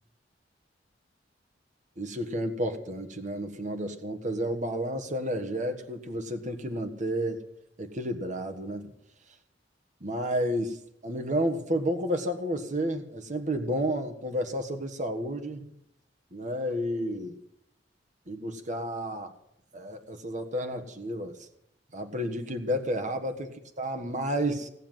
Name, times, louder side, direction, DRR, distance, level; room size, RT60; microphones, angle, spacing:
voice 1, 2.0-7.4 7.8-8.9 10.0-10.8 11.0-15.7 16.3-17.4 18.3-19.3 19.7-21.4 21.9-23.5 23.8-24.7, equal, 45° right, 7 dB, 1.5 m, -31 dB
18.0 x 7.0 x 9.2 m, 0.75 s
head